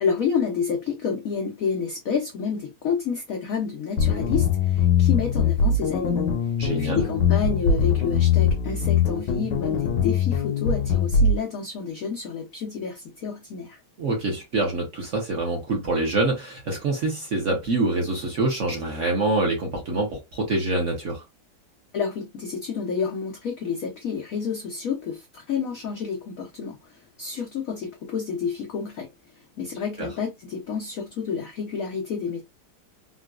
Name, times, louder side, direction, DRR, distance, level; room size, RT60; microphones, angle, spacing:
voice 1, 0.0-13.8 21.9-32.4, left 6 dB, 85° left, 0.7 m, -29 dB
sound 1, 4.0-11.4, left 6 dB, 70° left, 1.1 m, -22 dB
voice 2, 6.6-7.0 14.0-21.2 30.0-30.1, right 2 dB, 55° right, 0.9 m, -25 dB
3.8 x 2.3 x 2.3 m
omnidirectional pair, 2.2 m